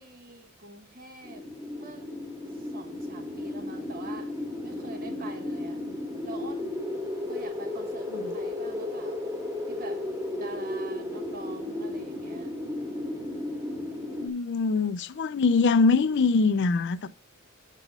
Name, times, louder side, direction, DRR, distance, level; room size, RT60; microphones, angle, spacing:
voice 1, 0.0-2.1 2.5-5.8 6.2-6.8 7.3-9.2 9.7-10.0 10.3-12.5, right 3 dB, 40° right, 1.2 m, -45 dB
sound 1, 1.2-14.3, left 1 dB, 15° right, 1.7 m, -34 dB
voice 2, 14.2-17.1, left 4 dB, 50° left, 0.4 m, -23 dB
8.2 x 4.0 x 6.5 m
head